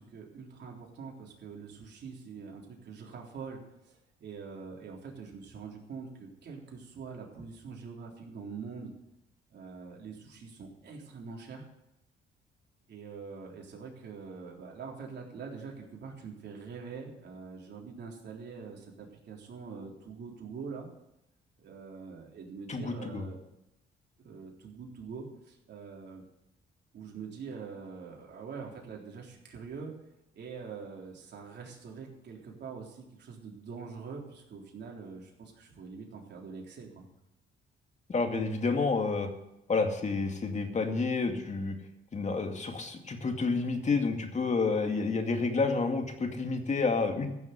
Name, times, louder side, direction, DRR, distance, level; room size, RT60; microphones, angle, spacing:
voice 1, 0.0-8.9 9.5-11.6 12.9-20.9 21.6-23.4 24.2-26.2 26.9-29.9 30.3-37.0, right 5 dB, 60° right, -1 dB, 3.7 m, -44 dB
voice 2, 22.7-23.2 38.1-39.3 39.7-41.8 42.1-47.3, left 4 dB, 35° left, 4 dB, 2.3 m, -29 dB
15.0 x 6.9 x 8.2 m, 0.87 s
cardioid pair, 90°, 20 cm